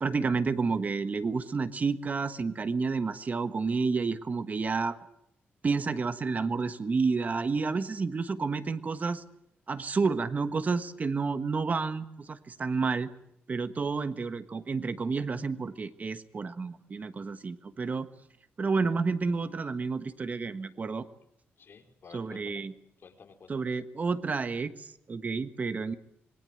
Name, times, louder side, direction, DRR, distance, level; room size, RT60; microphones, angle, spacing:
voice 1, 0.0-5.0 5.6-9.2 9.7-13.1 13.5-18.1 18.6-21.1 22.1-22.7 23.5-26.0, right 4 dB, 35° right, 10 dB, 1.4 m, -30 dB
voice 2, 21.6-22.7 23.0-23.7, left 5 dB, 55° left, 5 dB, 4.1 m, -53 dB
26.5 x 22.5 x 7.9 m, 0.79 s
wide cardioid pair, 125°, 4 cm